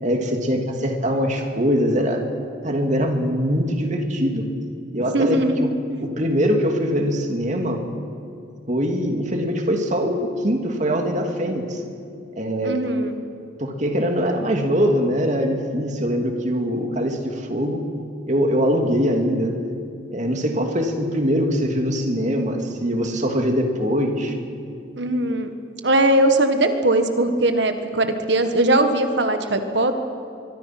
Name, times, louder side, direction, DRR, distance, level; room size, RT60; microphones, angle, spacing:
voice 1, 0.0-2.2 2.6-4.4 4.9-5.7 6.0-7.8 8.7-11.8 12.4-12.8 13.6-17.8 18.3-19.5 20.1-24.4, equal, 35° right, 3 dB, 2.7 m, -22 dB
voice 2, 5.1-6.0 12.6-13.2 24.9-25.5 25.8-30.0, right 1 dB, 60° right, 7 dB, 1.7 m, -20 dB
24.0 x 23.5 x 6.1 m, 2.4 s
head